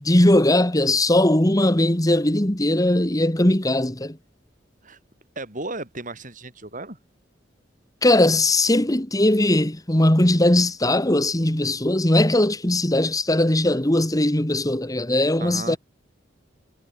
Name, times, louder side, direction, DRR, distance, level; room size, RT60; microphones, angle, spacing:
voice 1, 0.0-4.2 8.0-15.8, left 1 dB, 20° left, 1.7 m, -19 dB
voice 2, 5.3-7.0 15.4-15.8, right 2 dB, 40° right, 6.4 m, -34 dB
head